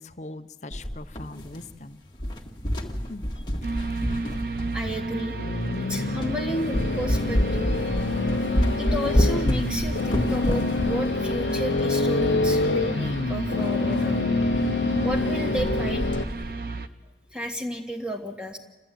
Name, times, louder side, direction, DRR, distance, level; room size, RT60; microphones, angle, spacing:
voice 1, 0.0-2.0 3.1-3.3 3.6-3.7 14.4-14.7, left 2 dB, 40° left, 10 dB, 0.8 m, -41 dB
sound 1, 0.7-1.8 2.1-5.1 5.7-5.8 6.2-6.4 6.7-12.8 13.1-13.2 13.4-13.5 13.9-14.1 14.5-14.7 14.9-15.3 15.6-16.5, equal, 25° left, 1.6 m, -28 dB
sound 2, 3.6-16.9, right 3 dB, 55° right, 0.9 m, -33 dB
voice 2, 4.7-5.3 5.7-7.7 8.8-14.2 15.0-16.0 17.3-18.6, equal, 5° right, 2 dB, 1.6 m, -32 dB
sound 3, 5.3-16.3, left 3 dB, 85° left, 0.7 m, -26 dB
29.0 x 13.5 x 9.0 m, 1.2 s
head